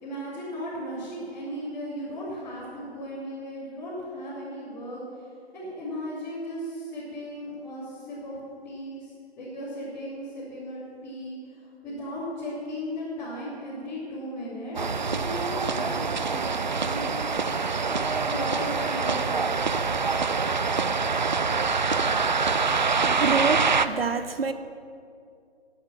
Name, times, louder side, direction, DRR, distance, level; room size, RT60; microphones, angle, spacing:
voice 1, 0.0-5.0 5.5-8.4 8.6-9.1 9.4-11.4 11.8-16.0 16.3-17.0 17.8-18.0 18.2-19.4, equal, 10° left, 3.0 m, -36 dB
sound 1, 14.7-23.9, right 4 dB, 45° right, 0.6 m, -25 dB
voice 2, 23.1-24.5, right 5 dB, 65° right, 0.9 m, -27 dB
19.0 x 8.9 x 7.3 m
figure-of-eight pair, 150°, 32 cm